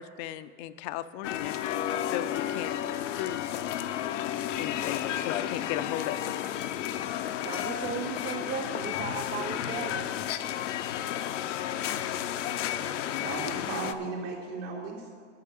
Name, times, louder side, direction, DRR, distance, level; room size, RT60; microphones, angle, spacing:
voice 1, 0.0-2.7 3.1-3.4 4.6-6.3, left 12 dB, 40° left, 13 dB, 0.4 m, -36 dB
sound 1, 1.2-13.9, left 11 dB, 85° left, 0.7 m, -32 dB
voice 2, 7.3-10.1, right 6 dB, 20° right, 9 dB, 0.6 m, -36 dB
voice 3, 13.2-15.1, right 4 dB, 80° right, -9 dB, 3.1 m, -36 dB
8.4 x 6.7 x 8.5 m, 2.1 s
supercardioid pair, 130°, 36 cm